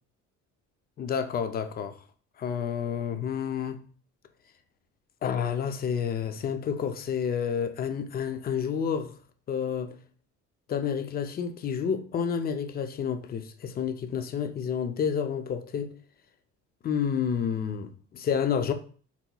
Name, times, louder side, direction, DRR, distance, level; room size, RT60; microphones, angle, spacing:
voice 1, 1.0-2.0 2.4-3.8 5.2-9.2 9.5-10.0 10.7-15.9 16.8-18.7, left 7 dB, 30° left, 0.4 m, -29 dB
4.1 x 2.9 x 2.2 m
cardioid pair, 115°, 32 cm